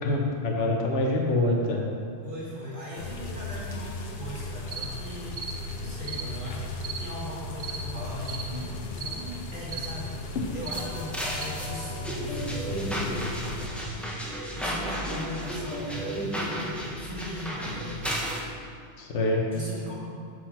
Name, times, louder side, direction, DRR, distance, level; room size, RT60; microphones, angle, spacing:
voice 1, 0.0-1.8 19.0-19.4, left 2 dB, 80° left, 0 dB, 1.3 m, -25 dB
voice 2, 2.2-18.2 19.5-20.0, equal, 45° right, -7 dB, 2.0 m, -38 dB
sound 1, 3.0-13.7, left 3 dB, 60° left, 0.9 m, -36 dB
sound 2, 4.7-4.9 5.3-5.6 6.0-6.3 6.8-7.0 7.6-7.8 8.3-8.5 9.0-9.2 9.7-9.9 10.6-10.9 11.4-11.5, right 6 dB, 70° right, 1.0 m, -36 dB
sound 3, 10.7-18.4, equal, ahead, 0.8 m, -33 dB
6.3 x 6.1 x 4.3 m, 2.2 s
omnidirectional pair, 1.2 m